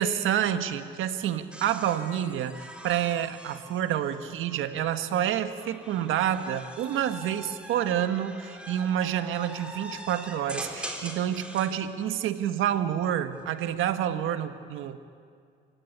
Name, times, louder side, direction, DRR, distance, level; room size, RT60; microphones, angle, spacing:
voice 1, 0.0-15.0, right 10 dB, 85° right, 9 dB, 1.5 m, -28 dB
sound 1, 1.5-4.8 5.6-11.8 13.3-13.8, equal, 5° right, 3.9 m, -43 dB
28.5 x 16.5 x 10.0 m, 2.2 s
cardioid pair, 90°, 20 cm